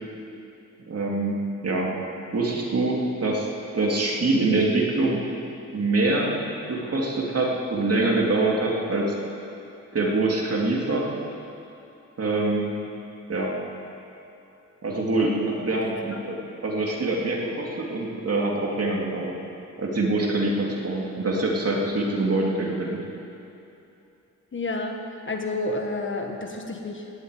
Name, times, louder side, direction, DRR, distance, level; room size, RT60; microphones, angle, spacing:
voice 1, 0.9-1.9 2.3-3.5 3.7-5.2 5.7-6.4 6.7-9.1 9.9-11.1 12.2-12.8 13.3-13.5 14.8-16.4 16.6-19.3 19.8-23.0, right 2 dB, 55° right, -2 dB, 2.5 m, -24 dB
voice 2, 15.8-16.2 24.5-27.1, left 2 dB, 40° left, 3 dB, 1.3 m, -30 dB
16.5 x 8.2 x 9.5 m, 2.9 s
wide cardioid pair, 160°, 30 cm